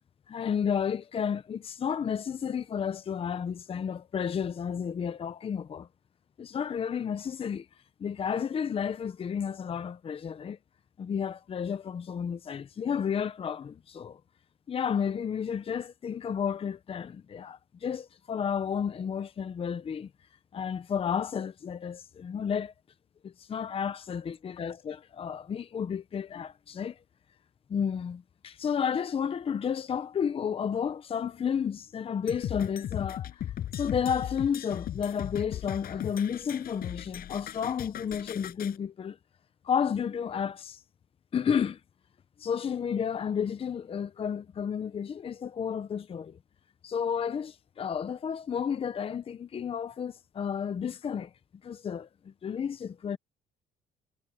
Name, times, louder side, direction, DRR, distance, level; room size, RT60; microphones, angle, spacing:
voice 1, 0.3-5.9 6.4-7.7 8.0-10.6 11.0-14.2 14.7-20.1 20.5-22.7 23.2-27.0 27.7-33.4 33.7-39.2 39.6-40.8 41.3-41.8 42.4-46.4 46.8-51.3 51.6-53.2, left 7 dB, 35° left, 0.8 m, -32 dB
sound 1, 32.3-38.8, left 11 dB, 60° left, 7.3 m, -37 dB
cardioid pair, 110°, 17 cm